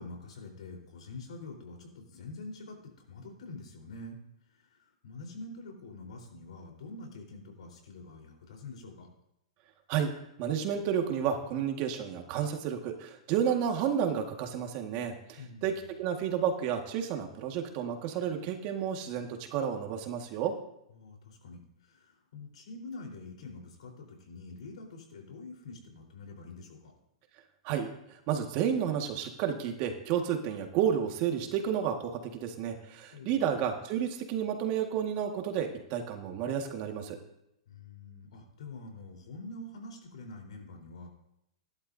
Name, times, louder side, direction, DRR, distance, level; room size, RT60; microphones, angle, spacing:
voice 1, 0.0-4.2 4.5-9.1 15.4-15.8 20.9-26.9 33.1-33.6 37.7-41.1, left 2 dB, 80° left, 1 dB, 4.2 m, -46 dB
voice 2, 10.4-20.5 27.6-28.0 28.3-37.2, right 8 dB, 40° right, 4 dB, 1.8 m, -31 dB
18.0 x 11.5 x 2.8 m, 0.80 s
hypercardioid pair, 140°, 3 cm